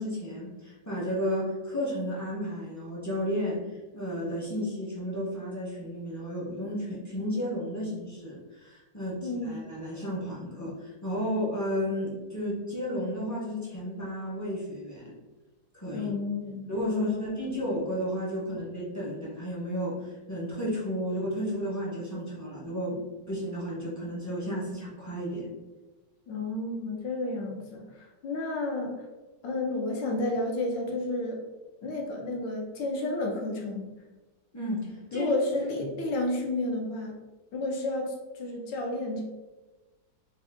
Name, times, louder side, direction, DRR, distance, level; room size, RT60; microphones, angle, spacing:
voice 1, 0.0-3.6 3.9-15.1 15.7-16.1 16.7-23.0 23.3-25.5 34.5-35.3, equal, 25° left, -7 dB, 0.4 m, -33 dB
voice 2, 9.2-9.6 15.9-17.5 26.3-29.0 29.4-31.4 31.8-33.9 35.1-37.2 37.5-39.2, left 2 dB, 80° left, 1 dB, 1.4 m, -31 dB
3.5 x 2.6 x 3.4 m, 1.1 s
omnidirectional pair, 1.9 m